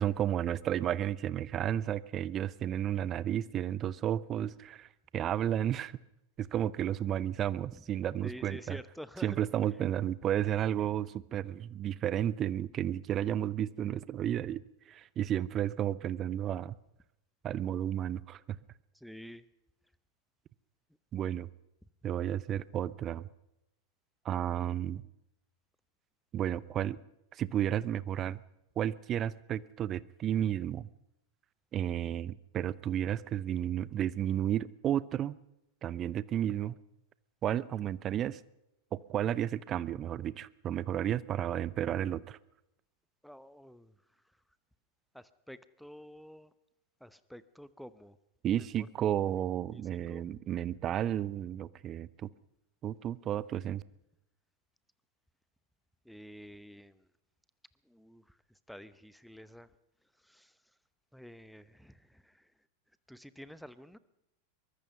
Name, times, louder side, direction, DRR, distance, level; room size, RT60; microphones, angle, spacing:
voice 1, 0.0-5.9 6.4-8.8 9.2-16.8 17.4-18.6 21.1-21.5 22.0-23.3 24.2-25.0 26.3-27.0 27.3-28.4 28.8-30.9 31.7-35.4 35.8-36.8 37.4-38.4 38.9-42.4 48.4-52.3 52.8-53.8, right 11 dB, 30° right, 20 dB, 0.7 m, -32 dB
voice 2, 8.2-9.4 18.9-19.5 28.3-28.4 43.2-43.9 45.1-46.5 47.0-48.2 48.8-48.9 49.7-50.2 56.0-57.1 57.9-58.4 58.7-59.7 60.2-60.5 61.1-62.5 63.1-64.0, equal, ahead, 16 dB, 0.9 m, -49 dB
23.0 x 20.5 x 5.6 m, 0.87 s
figure-of-eight pair, 90°, 0 cm